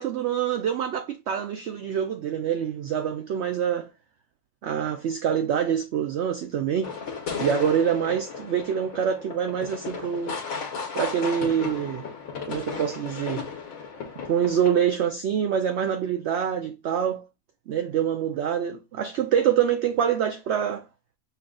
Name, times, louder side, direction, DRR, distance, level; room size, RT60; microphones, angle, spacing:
voice 1, 0.0-3.9 4.6-6.9 7.4-10.4 10.9-12.0 12.5-13.4 14.3-17.3 17.7-20.8, right 8 dB, 65° right, 0.7 m, -25 dB
sound 1, 6.8-14.9, left 5 dB, 85° left, 1.4 m, -35 dB
5.8 x 2.3 x 3.6 m
omnidirectional pair, 1.4 m